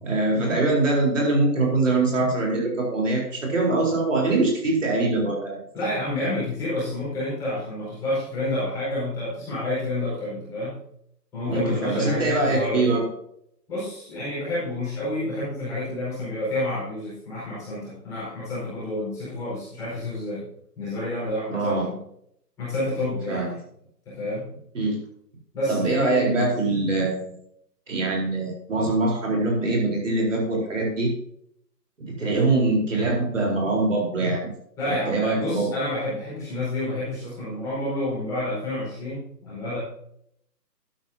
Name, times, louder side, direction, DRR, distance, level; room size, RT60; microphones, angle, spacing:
voice 1, 0.0-5.9 11.5-13.0 21.5-21.9 23.3-23.5 24.7-25.0 25.7-27.4 27.9-31.1 32.2-34.4 34.9-35.7, right 2 dB, 50° right, -1 dB, 4.2 m, -23 dB
voice 2, 5.7-10.8 11.3-13.0 13.7-20.4 20.8-22.0 22.6-23.4 24.0-24.5 25.5-26.3 34.8-39.8, left 1 dB, 5° left, -10 dB, 4.7 m, -29 dB
12.5 x 11.5 x 2.8 m, 0.70 s
hypercardioid pair, 170°, 49 cm